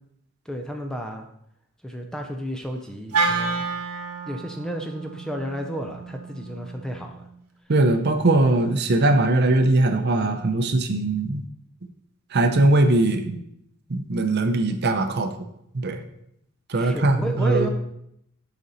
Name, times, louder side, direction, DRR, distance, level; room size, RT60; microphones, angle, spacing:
voice 1, 0.5-1.3 1.8-3.6 4.2-7.2 16.7-17.7, equal, 5° left, 3 dB, 0.5 m, -32 dB
Wind instrument woodwind instrument, 3.1-7.4, right 4 dB, 90° right, 1.0 m, -30 dB
voice 2, 7.7-11.4 12.3-13.4 13.9-15.3 15.7-16.0 16.7-17.7, right 2 dB, 45° right, 6 dB, 0.6 m, -20 dB
7.0 x 5.1 x 4.0 m, 0.76 s
head